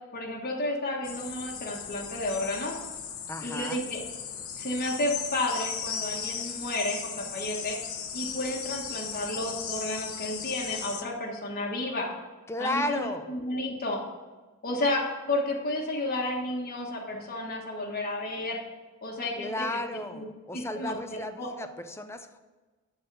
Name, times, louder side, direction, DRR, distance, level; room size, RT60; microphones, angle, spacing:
voice 1, 0.1-2.8 3.4-4.0 4.6-7.8 8.1-12.1 12.6-14.0 14.6-18.6 19.0-20.2 20.5-21.5, left 1 dB, 45° left, -1 dB, 1.4 m, -32 dB
sound 1, 1.0-11.0, left 7 dB, 70° left, 1.0 m, -37 dB
voice 2, 3.3-3.8 12.5-13.3 19.4-22.4, left 1 dB, 10° left, 8 dB, 0.6 m, -34 dB
11.5 x 4.1 x 6.7 m, 1.3 s
head